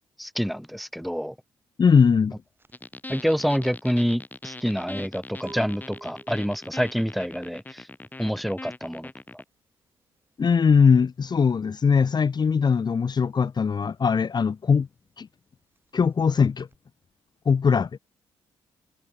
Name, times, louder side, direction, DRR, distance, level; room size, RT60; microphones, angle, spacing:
voice 1, 0.2-1.3 3.1-7.9 8.2-9.1, equal, ahead, 1.8 m, -27 dB
voice 2, 1.8-2.3 10.4-14.9 15.2-15.3 15.9-16.7 17.4-17.9, left 6 dB, 45° left, 1.5 m, -20 dB
sound 1, 2.0-12.3 12.5-16.8, right 2 dB, 20° right, 7.7 m, -52 dB
sound 2, 2.7-9.4, left 2 dB, 20° left, 2.8 m, -41 dB
supercardioid pair, 65°, 10 cm